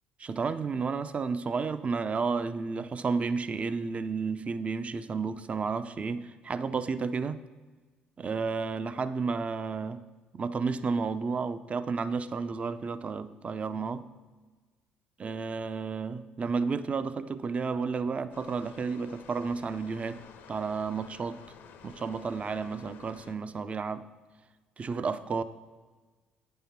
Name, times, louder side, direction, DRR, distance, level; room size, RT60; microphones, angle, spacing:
voice 1, 0.2-7.4 8.2-10.0 10.3-14.0 15.2-20.2 20.5-21.4 21.8-24.1 24.8-25.4, right 5 dB, 35° right, 13 dB, 0.5 m, -32 dB
sound 1, 18.3-23.4, left 7 dB, 70° left, 0.8 m, -51 dB
9.0 x 5.5 x 5.8 m, 1.4 s
hypercardioid pair, 65°, 4 cm